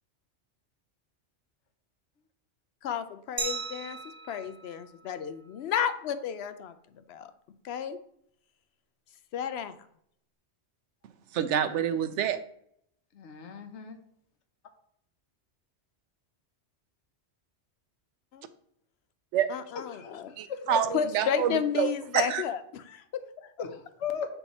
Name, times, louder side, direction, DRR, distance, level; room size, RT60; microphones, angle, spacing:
voice 1, 2.8-4.0 4.3-6.7 7.1-7.3 7.6-8.0 9.3-9.7 18.3-18.5 19.5-20.3 20.9-23.0 23.4-23.5, left 8 dB, 70° left, 11 dB, 0.8 m, -32 dB
Glass, 3.4-6.1, right 4 dB, 60° right, 1.3 m, -39 dB
voice 2, 11.3-12.4 19.3-19.5 20.4-21.9 22.1-22.4, right 9 dB, 90° right, 11 dB, 0.9 m, -27 dB
voice 3, 13.1-14.0 19.9-20.2 20.5-20.8 23.6-24.3, left 7 dB, 90° left, 7 dB, 1.1 m, -36 dB
7.0 x 3.5 x 4.1 m, 0.70 s
omnidirectional pair, 1.2 m